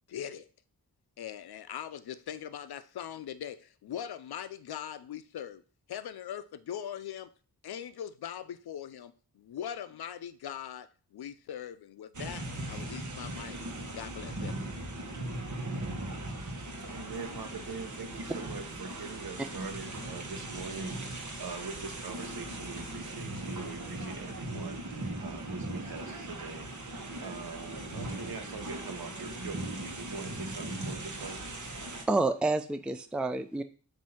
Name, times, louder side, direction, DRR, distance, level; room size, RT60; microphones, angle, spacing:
voice 1, 0.1-0.5 1.2-5.6 5.9-7.3 7.6-13.6 13.9-14.7, left 9 dB, 80° left, 0.5 m, -41 dB
sound 1, 12.1-32.0, right 1 dB, 50° right, 1.2 m, -39 dB
voice 2, 16.9-27.0 27.2-31.4, right 4 dB, 70° right, 0.9 m, -43 dB
voice 3, 32.1-33.6, right 3 dB, 5° right, 0.4 m, -28 dB
7.4 x 2.7 x 5.6 m
wide cardioid pair, 80°, 37 cm